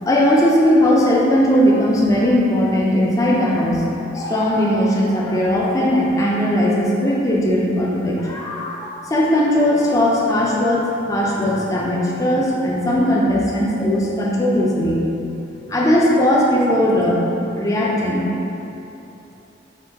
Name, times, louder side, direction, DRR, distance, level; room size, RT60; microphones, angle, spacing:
voice 1, 0.0-15.0 15.7-17.2 17.6-18.3, equal, 15° left, -4 dB, 0.4 m, -18 dB
3.6 x 2.6 x 2.8 m, 2.9 s
head